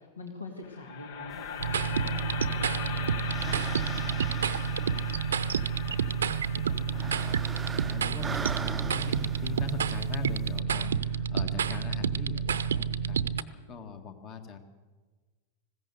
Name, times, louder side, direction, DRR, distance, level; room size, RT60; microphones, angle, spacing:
voice 1, 0.0-4.0, left 3 dB, 75° left, 3 dB, 2.1 m, -43 dB
sound 1, 0.6-10.8, left 8 dB, 55° left, 1.0 m, -41 dB
sound 2, 1.3-10.6, right 5 dB, 15° right, 0.6 m, -43 dB
sound 3, 1.6-13.4, right 7 dB, 65° right, 0.7 m, -29 dB
voice 2, 6.1-13.3 13.7-14.6, left 6 dB, 35° left, 8 dB, 1.8 m, -42 dB
20.0 x 16.0 x 8.2 m, 1.3 s
figure-of-eight pair, 90°, 0 cm